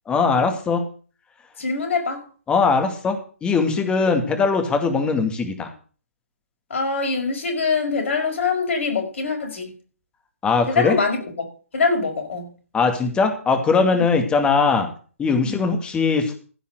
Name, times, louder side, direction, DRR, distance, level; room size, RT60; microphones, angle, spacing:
voice 1, 0.1-0.8 2.5-5.7 10.4-11.0 12.7-14.9 15.2-16.3, left 4 dB, 15° left, 6 dB, 2.2 m, -20 dB
voice 2, 1.6-2.2 6.7-9.7 10.7-11.5 11.7-12.5 15.4-15.7, left 4 dB, 60° left, 3 dB, 5.6 m, -23 dB
15.5 x 5.6 x 7.7 m, 0.39 s
figure-of-eight pair, 130°, 8 cm